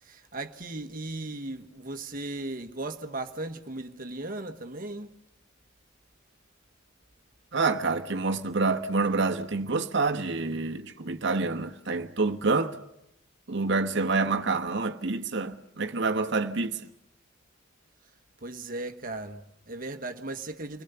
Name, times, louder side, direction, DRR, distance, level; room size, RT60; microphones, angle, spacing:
voice 1, 0.0-5.1 18.4-20.8, right 2 dB, 45° right, 1.3 m, -37 dB
voice 2, 7.5-12.7 13.5-16.8, right 3 dB, 60° right, 1.2 m, -27 dB
29.5 x 21.0 x 6.9 m
head